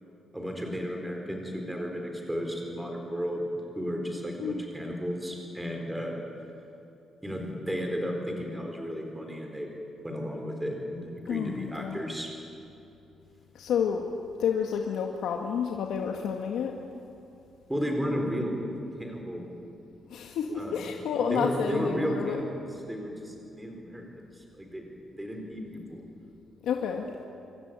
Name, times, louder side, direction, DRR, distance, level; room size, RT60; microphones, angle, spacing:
voice 1, 0.3-3.4 3.7-6.2 7.2-9.7 10.0-12.3 17.7-18.6 19.0-19.5 20.6-20.8 21.2-24.1 24.4-24.8 25.2-26.0, equal, 5° right, 2 dB, 4.2 m, -33 dB
voice 2, 11.3-12.2 13.5-14.0 14.4-16.8 20.1-22.4 26.6-27.1, left 7 dB, 75° left, 2 dB, 2.0 m, -30 dB
26.0 x 24.0 x 9.1 m, 2.7 s
cardioid pair, 180°, 0 cm